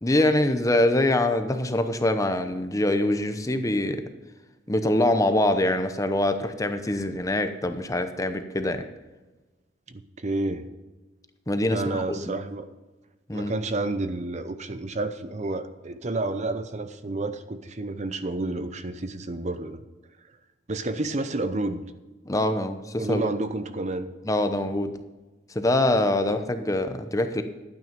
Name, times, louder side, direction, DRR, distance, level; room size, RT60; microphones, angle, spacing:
voice 1, 0.0-4.0 4.7-8.9 11.5-12.3 13.3-13.5 22.2-23.2 24.3-24.9 25.5-27.4, left 1 dB, 20° left, 8 dB, 0.8 m, -24 dB
voice 2, 9.9-10.7 11.7-12.7 13.3-19.8 20.7-21.8 23.0-24.1 26.3-26.4, right 2 dB, 40° right, 10 dB, 0.7 m, -30 dB
11.5 x 9.4 x 5.2 m, 1.2 s
head